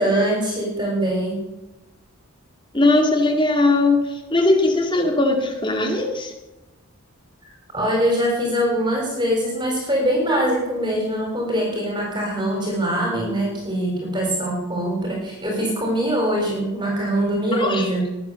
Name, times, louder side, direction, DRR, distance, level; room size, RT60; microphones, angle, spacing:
voice 1, 0.0-1.4 7.7-18.1, right 1 dB, 20° right, 0 dB, 4.1 m, -23 dB
voice 2, 2.7-6.3 17.6-17.9, left 2 dB, 20° left, 3 dB, 2.3 m, -19 dB
20.5 x 8.5 x 6.9 m, 1.0 s
head